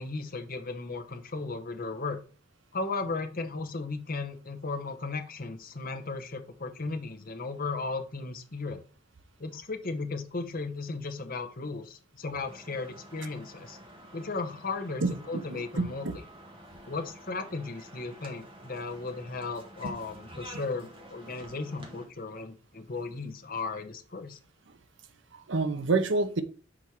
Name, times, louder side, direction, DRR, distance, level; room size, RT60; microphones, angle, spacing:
voice 1, 0.0-2.2 2.7-8.8 9.4-13.8 14.1-16.1 16.8-24.4, left 3 dB, 50° left, 1.0 m, -36 dB
sound 1, 12.4-22.1, right 1 dB, 30° right, 1.5 m, -50 dB
voice 2, 15.0-16.2 19.8-20.0 25.5-26.4, right 3 dB, 70° right, 0.8 m, -28 dB
6.2 x 4.3 x 4.6 m
head